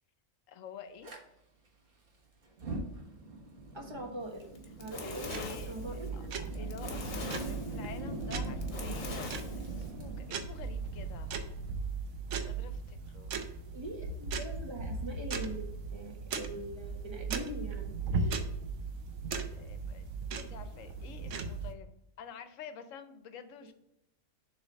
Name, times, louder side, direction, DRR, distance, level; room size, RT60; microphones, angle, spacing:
voice 1, 0.5-1.1 5.0-5.7 6.1-11.3 12.3-13.3 19.5-23.7, left 7 dB, 75° left, 10 dB, 1.0 m, -49 dB
Fire, 1.0-1.2 2.4-11.5, right 2 dB, 45° right, 1.4 m, -42 dB
voice 2, 3.7-4.4 4.8-6.1 13.7-15.6 15.9-18.4, right 1 dB, 25° right, 1 dB, 1.0 m, -42 dB
Fire 2, 4.4-9.9, left 3 dB, 50° left, 1.2 m, -43 dB
sound 1, 4.8-21.7, right 4 dB, 70° right, 1.0 m, -38 dB
7.1 x 3.3 x 5.1 m, 0.83 s
omnidirectional pair, 1.4 m